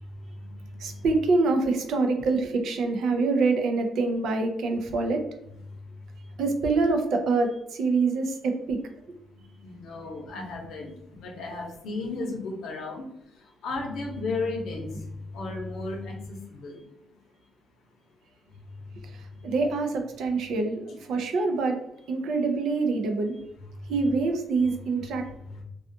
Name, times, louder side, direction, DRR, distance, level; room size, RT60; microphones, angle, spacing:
voice 1, 0.8-5.2 6.4-8.8 19.1-21.8 22.1-23.3 23.9-25.3, right 3 dB, 70° right, 5 dB, 0.4 m, -25 dB
voice 2, 9.6-13.0 13.6-14.9 15.3-16.8, left 3 dB, 75° left, 1 dB, 0.7 m, -34 dB
2.4 x 2.3 x 2.6 m, 0.79 s
cardioid pair, 150°, 0 cm